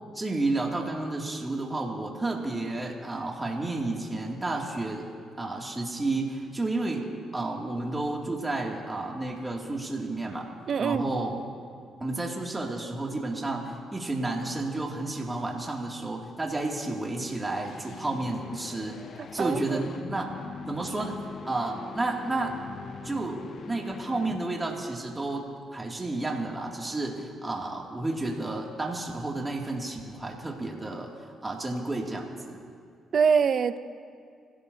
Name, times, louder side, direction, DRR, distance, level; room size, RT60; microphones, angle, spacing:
voice 1, 0.1-5.1 5.4-10.5 10.8-11.4 12.0-19.0 19.3-20.3 20.7-21.2 21.5-22.5 23.0-25.5 25.7-31.1 31.4-32.6, right 2 dB, 20° right, -1 dB, 2.6 m, -31 dB
voice 2, 10.7-11.1 19.2-19.6 33.1-33.8, right 6 dB, 55° right, 12 dB, 0.6 m, -24 dB
sound 1, 17.0-24.7, left 6 dB, 55° left, 0.6 m, -43 dB
25.5 x 16.5 x 2.8 m, 2.2 s
cardioid pair, 90°, 0 cm